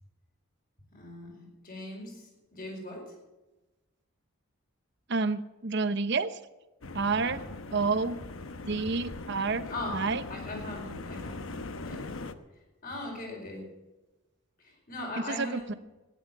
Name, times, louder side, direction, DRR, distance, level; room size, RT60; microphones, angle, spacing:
voice 1, 0.9-3.2 7.2-7.5 9.7-10.0 10.3-12.0 12.8-13.7 14.6-15.8, left 1 dB, 45° left, 0 dB, 4.8 m, -40 dB
voice 2, 5.1-6.4 6.9-7.4 7.7-8.2 8.7-10.2 15.3-15.7, right 4 dB, 55° right, 12 dB, 0.8 m, -29 dB
sound 1, 6.8-12.3, left 3 dB, 75° left, 0.9 m, -41 dB
15.5 x 10.5 x 7.2 m, 1.1 s
head